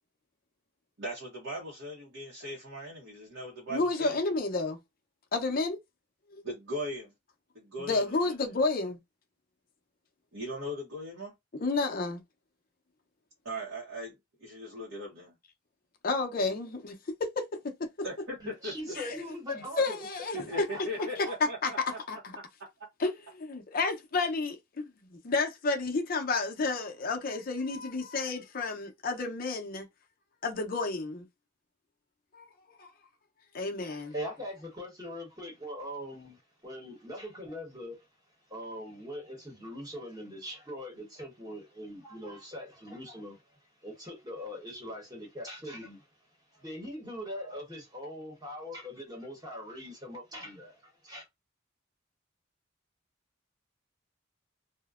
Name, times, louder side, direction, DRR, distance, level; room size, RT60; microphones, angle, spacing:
voice 1, 1.0-4.2 6.4-7.1 7.5-8.3 10.3-11.3 13.4-14.1 14.4-15.3 18.0-18.7 20.3-22.4, equal, 75° right, 0.8 m, -39 dB
voice 2, 3.7-4.8 5.3-5.8 6.3-6.4 7.8-9.0 11.5-12.2 16.0-17.9 18.9-19.2 19.5-20.7 21.0-21.3 21.6-22.4 23.0-23.1 23.4-29.9 30.4-31.3 32.3-32.4 32.8-32.9 33.5-34.1, left 3 dB, 45° left, 0.6 m, -31 dB
voice 3, 18.4-20.1 20.3-20.8 21.2-21.4 33.8-38.0 38.5-43.4 43.8-46.1 46.5-51.2, equal, 20° right, 1.0 m, -41 dB
2.5 x 2.1 x 2.3 m
head